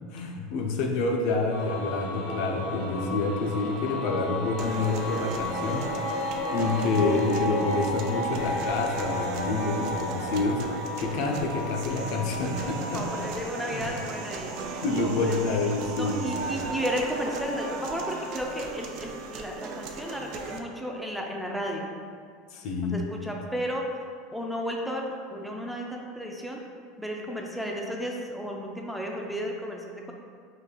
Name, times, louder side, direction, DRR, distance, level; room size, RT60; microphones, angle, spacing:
voice 1, 0.1-5.9 6.5-10.6 11.0-13.0 13.7-13.9 14.8-16.6 22.5-23.0, left 3 dB, 60° left, 2 dB, 0.6 m, -28 dB
sound 1, 1.5-18.4, left 1 dB, 85° left, 1.5 m, -34 dB
sound 2, 4.6-20.6, right 4 dB, 55° right, 0.4 m, -38 dB
voice 2, 12.9-14.6 15.0-15.1 16.0-21.9 22.9-23.8 24.3-25.0 25.3-26.6 27.0-30.1, equal, ahead, 0 dB, 0.4 m, -33 dB
5.1 x 3.8 x 2.3 m, 2.2 s
supercardioid pair, 130°, 0 cm